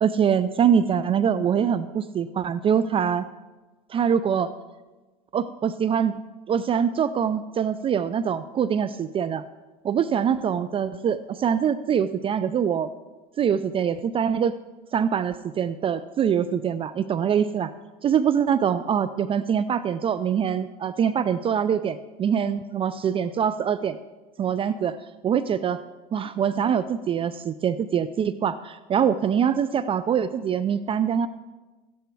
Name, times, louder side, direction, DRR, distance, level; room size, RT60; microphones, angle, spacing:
voice 1, 0.0-3.3 3.9-4.5 5.3-6.2 6.5-9.4 9.8-12.9 13.4-14.6 14.9-17.7 18.0-24.0 24.4-25.0 25.2-25.8 26.1-31.3, right 8 dB, 30° right, 14 dB, 0.4 m, -24 dB
14.0 x 10.5 x 4.6 m, 1.2 s
supercardioid pair, 95°, 18 cm